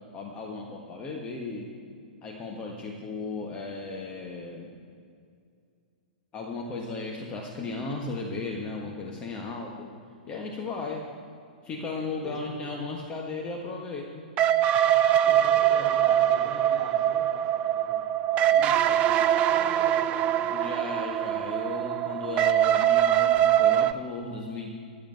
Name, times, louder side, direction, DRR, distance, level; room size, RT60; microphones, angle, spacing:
voice 1, 0.1-1.7 2.2-4.7 6.3-9.9 10.3-11.0 11.6-14.3 20.5-24.7, left 3 dB, 20° left, -1 dB, 1.5 m, -35 dB
voice 2, 12.1-12.6 15.2-20.1, right 1 dB, 10° right, -6 dB, 4.1 m, -44 dB
sound 1, 14.4-23.9, right 11 dB, 25° right, 0.5 m, -23 dB
14.5 x 7.5 x 8.8 m, 2.3 s
figure-of-eight pair, 105°, 5 cm